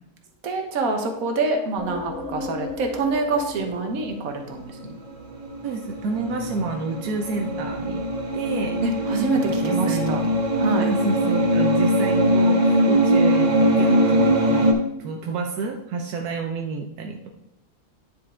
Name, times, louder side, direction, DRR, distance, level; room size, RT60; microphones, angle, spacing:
voice 1, 0.4-5.0 8.8-10.2 10.6-10.9 13.8-14.4, right 3 dB, 70° right, 4 dB, 1.4 m, -26 dB
sound 1, 1.8-5.4, left 2 dB, 5° left, 2.0 m, -36 dB
sound 2, 4.3-14.7, equal, 35° right, 0.8 m, -21 dB
voice 2, 5.6-8.0 8.3-8.8 9.3-10.4 10.8-14.7 15.0-17.3, right 4 dB, 85° right, 3 dB, 1.2 m, -29 dB
9.7 x 4.6 x 3.6 m, 0.82 s
omnidirectional pair, 1.6 m